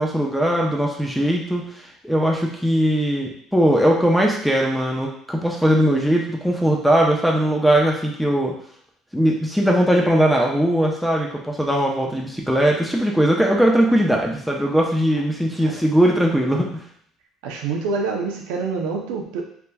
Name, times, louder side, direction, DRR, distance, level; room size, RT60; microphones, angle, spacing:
voice 1, 0.0-8.5 9.1-16.8, equal, ahead, 0 dB, 0.6 m, -20 dB
voice 2, 17.4-19.4, right 4 dB, 85° right, 2 dB, 0.5 m, -26 dB
3.3 x 2.8 x 2.2 m, 0.64 s
supercardioid pair, 105°, 0 cm